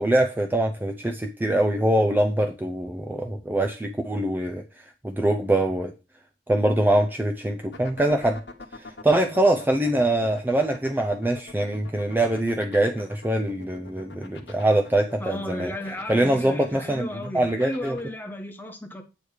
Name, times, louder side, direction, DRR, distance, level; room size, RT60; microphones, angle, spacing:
voice 1, 0.0-4.6 5.0-5.9 6.5-8.4 9.0-15.7 16.1-17.1 17.3-18.0, right 1 dB, 10° right, 0.5 m, -23 dB
sound 1, 7.6-18.0, left 3 dB, 70° left, 1.3 m, -43 dB
voice 2, 15.2-19.0, left 1 dB, 10° left, 1.1 m, -34 dB
8.6 x 3.1 x 6.4 m
head